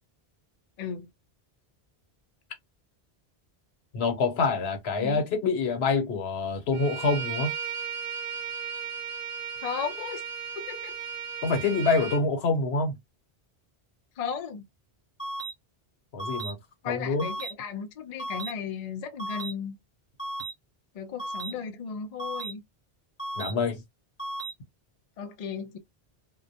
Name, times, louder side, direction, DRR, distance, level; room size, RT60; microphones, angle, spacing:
voice 1, 0.8-1.1 5.0-5.3 9.6-10.2 10.5-11.0 14.2-14.6 16.8-19.8 20.9-22.6 25.2-25.8, left 6 dB, 55° left, 0.5 m, -35 dB
voice 2, 3.9-7.5 11.4-12.9 16.1-16.6 16.9-17.3 23.4-23.8, left 4 dB, 85° left, 1.0 m, -26 dB
Bowed string instrument, 6.7-12.2, right 7 dB, 75° right, 0.9 m, -35 dB
sound 1, 15.2-15.5 16.2-16.5 17.2-17.5 18.2-18.5 19.2-19.5 20.2-20.5 21.2-21.5 22.2-22.5 23.2-23.5 24.2-24.5, right 2 dB, 10° left, 1.0 m, -34 dB
2.2 x 2.1 x 2.6 m
omnidirectional pair, 1.0 m